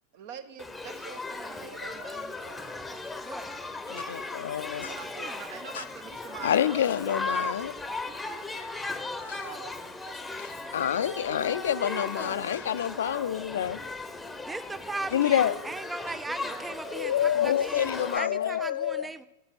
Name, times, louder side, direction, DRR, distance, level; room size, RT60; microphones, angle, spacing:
voice 1, 0.1-2.7 4.8-6.9 9.4-10.1 16.3-17.0, right 8 dB, 50° right, 0.9 m, -45 dB
Shout / Human group actions, 0.6-18.2, left 3 dB, 5° left, 0.9 m, -37 dB
voice 2, 3.2-3.5 4.8-5.4 11.6-12.7 14.4-19.2, right 3 dB, 10° right, 0.4 m, -39 dB
voice 3, 3.9-4.9 6.4-7.7 9.3-9.5 10.4-13.8 15.1-15.5 16.9-19.1, left 10 dB, 60° left, 0.4 m, -27 dB
8.8 x 7.3 x 6.9 m
figure-of-eight pair, 90°, 0 cm